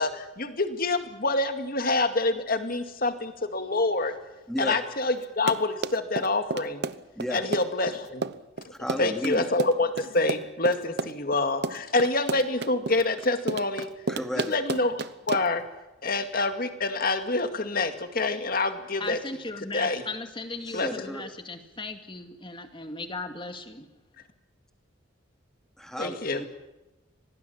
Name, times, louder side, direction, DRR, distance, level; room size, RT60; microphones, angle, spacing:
voice 1, 0.0-4.1 4.6-6.8 7.3-8.2 9.0-13.9 14.4-15.6 16.0-19.2 19.7-20.0 20.7-20.9 26.0-26.4, left 2 dB, 45° left, 8 dB, 2.4 m, -27 dB
Run, 5.2-15.6, right 3 dB, 55° right, 0.9 m, -32 dB
voice 2, 8.7-9.5 14.1-14.6 20.7-21.2 25.8-26.5, equal, ahead, 5 dB, 2.5 m, -33 dB
voice 3, 19.0-23.9, left 3 dB, 25° left, 7 dB, 2.3 m, -37 dB
26.0 x 19.0 x 8.7 m, 1.0 s
head